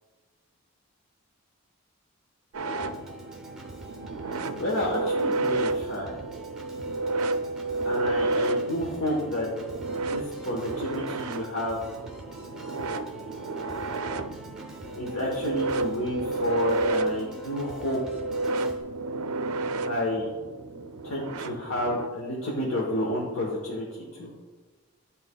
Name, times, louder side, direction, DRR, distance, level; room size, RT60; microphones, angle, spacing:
sound 1, 2.5-22.1, right 2 dB, 85° right, 0.4 m, -31 dB
Organ, 2.8-18.8, right 1 dB, 5° right, 0.6 m, -45 dB
voice 1, 4.2-6.2 7.8-9.6 10.0-11.8 15.0-18.0 19.8-20.3 21.0-24.3, left 1 dB, 80° left, -3 dB, 1.0 m, -30 dB
11.0 x 4.1 x 2.2 m, 1.4 s
head